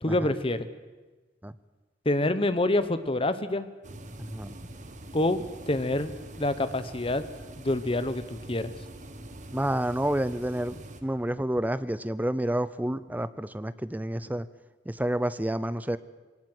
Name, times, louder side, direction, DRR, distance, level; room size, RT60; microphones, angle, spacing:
voice 1, 0.0-0.7 2.0-3.7 5.1-6.1 6.4-7.2 7.6-8.7, left 1 dB, 30° left, 12 dB, 1.1 m, -27 dB
sound 1, 3.8-11.0, right 1 dB, 45° right, 1.6 m, -44 dB
voice 2, 4.2-4.5 9.5-14.5 14.9-16.0, right 1 dB, 10° right, 15 dB, 0.6 m, -29 dB
22.5 x 18.5 x 8.0 m, 1.3 s
head